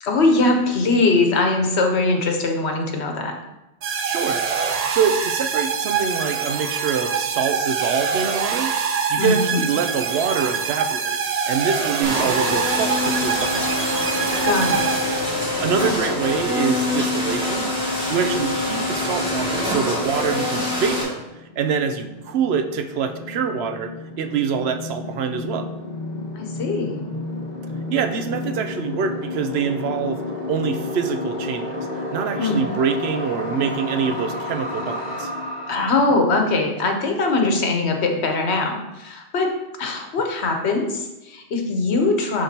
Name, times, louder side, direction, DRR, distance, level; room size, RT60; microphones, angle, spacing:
voice 1, 0.0-3.4 9.1-9.6 14.4-14.8 26.3-27.1 32.4-32.7 35.7-39.5 39.8-42.4, left 3 dB, 80° left, 3 dB, 1.2 m, -21 dB
sound 1, 3.8-15.6, right 6 dB, 55° right, 0.5 m, -25 dB
voice 2, 4.1-4.4 4.9-8.7 9.1-11.2 11.5-13.7 15.6-17.7 18.1-21.2 21.6-25.7 27.9-30.2 30.5-35.3, right 6 dB, 75° right, 7 dB, 0.8 m, -25 dB
sound 2, 12.0-21.0, left 2 dB, 5° right, 2.1 m, -24 dB
sound 3, 20.9-35.9, left 2 dB, 40° left, 1.1 m, -31 dB
11.0 x 3.7 x 2.8 m, 0.99 s
omnidirectional pair, 1.1 m